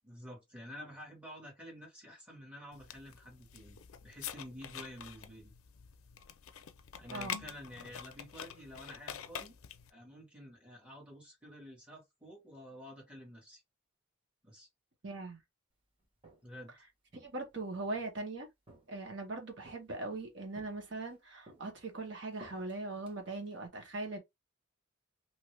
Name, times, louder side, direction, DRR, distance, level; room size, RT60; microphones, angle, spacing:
voice 1, 0.0-5.5 7.0-9.5 9.9-13.6 14.4-14.7 16.4-16.7, equal, 5° right, 1.3 m, -50 dB
sound 1, 2.7-9.9, left 8 dB, 90° left, 0.4 m, -46 dB
voice 2, 15.0-15.4 17.2-18.5 18.9-24.2, right 2 dB, 60° right, 1.1 m, -40 dB
Walk footsteps, 16.0-16.6 17.1-18.1 18.7-19.2 19.6-20.2 20.6-21.2 21.5-23.7, right 1 dB, 25° right, 1.0 m, -58 dB
2.8 x 2.6 x 3.2 m
head